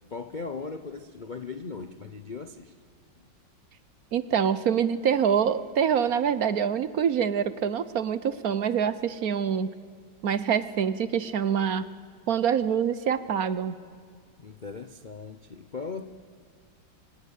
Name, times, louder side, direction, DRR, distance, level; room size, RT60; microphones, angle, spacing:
voice 1, 0.1-2.7 3.2-3.3 14.4-16.1, left 4 dB, 45° left, 9 dB, 0.6 m, -38 dB
voice 2, 4.1-9.7 10.2-11.9 12.3-13.8, right 8 dB, 60° right, 15 dB, 1.1 m, -25 dB
25.0 x 18.5 x 8.2 m, 2.1 s
omnidirectional pair, 2.0 m